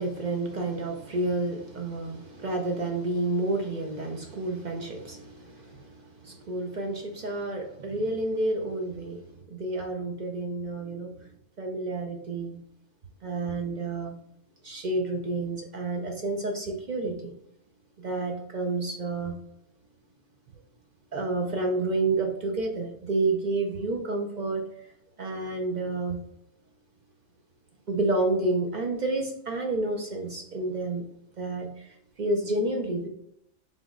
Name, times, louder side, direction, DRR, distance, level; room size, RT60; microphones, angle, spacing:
voice 1, 0.0-11.1 11.6-12.6 13.2-14.2 14.6-17.3 18.0-19.4 21.1-24.7 25.2-26.2 27.9-31.0 31.4-31.9 32.2-33.1, right 2 dB, 50° right, 2 dB, 0.6 m, -30 dB
3.7 x 3.0 x 3.6 m, 0.74 s
omnidirectional pair, 1.3 m